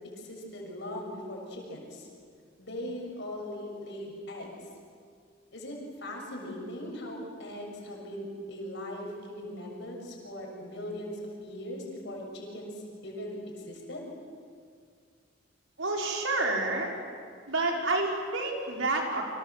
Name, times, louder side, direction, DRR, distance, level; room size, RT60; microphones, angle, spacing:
voice 1, 0.2-2.1 2.6-4.5 5.5-12.7 13.0-13.4 13.7-14.1, left 1 dB, 65° left, 1 dB, 6.9 m, -39 dB
voice 2, 15.8-16.9 17.5-19.2, right 2 dB, 80° right, 0 dB, 5.0 m, -29 dB
29.5 x 25.5 x 7.6 m, 2.1 s
head